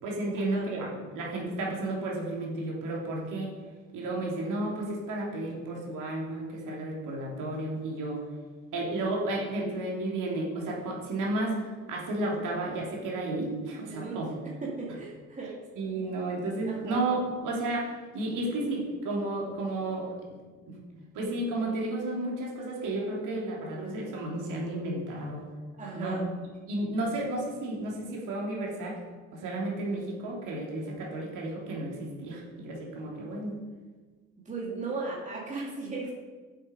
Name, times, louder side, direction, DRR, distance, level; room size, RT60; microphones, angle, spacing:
voice 1, 0.0-3.5 3.9-8.2 8.7-11.6 11.9-14.3 15.8-20.1 20.7-20.8 21.1-25.5 25.9-26.2 26.7-29.0 29.3-33.6, right 2 dB, 45° right, -2 dB, 2.9 m, -32 dB
voice 2, 14.6-15.6 15.9-16.0 16.3-17.0 25.8-26.2 34.5-36.1, right 3 dB, 15° right, -4 dB, 2.3 m, -37 dB
8.8 x 7.5 x 5.1 m, 1.4 s
figure-of-eight pair, 60°, 43 cm